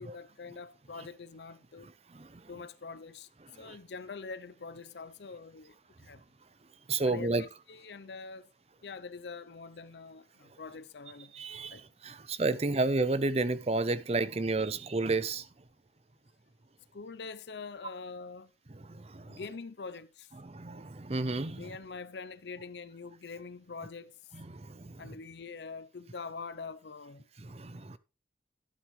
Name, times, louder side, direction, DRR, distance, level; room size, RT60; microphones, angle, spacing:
voice 1, 0.0-1.9 2.5-3.3 3.6-6.2 7.0-8.5 8.8-11.3 11.7-11.8 16.9-18.5 19.3-20.3 21.6-24.2 25.0-27.3, left 4 dB, 75° left, 0.6 m, -44 dB
voice 2, 6.9-7.4 11.3-15.5 18.8-19.4 20.4-21.7 24.3-25.0 27.4-28.0, right 3 dB, 35° right, 0.6 m, -32 dB
11.5 x 9.0 x 3.1 m
head